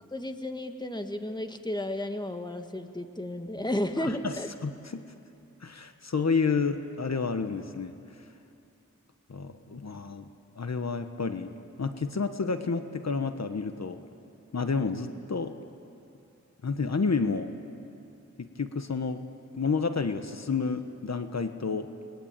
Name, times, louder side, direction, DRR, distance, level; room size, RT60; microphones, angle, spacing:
voice 1, 0.1-4.5, left 1 dB, 15° left, 6 dB, 1.8 m, -33 dB
voice 2, 4.0-4.3 4.6-5.0 5.6-8.2 9.3-10.3 10.6-11.5 11.8-14.0 14.5-15.5 16.6-17.6 18.4-19.2 19.5-21.9, left 4 dB, 60° left, 8 dB, 1.2 m, -30 dB
30.0 x 21.5 x 9.0 m, 2.7 s
wide cardioid pair, 55°, 30 cm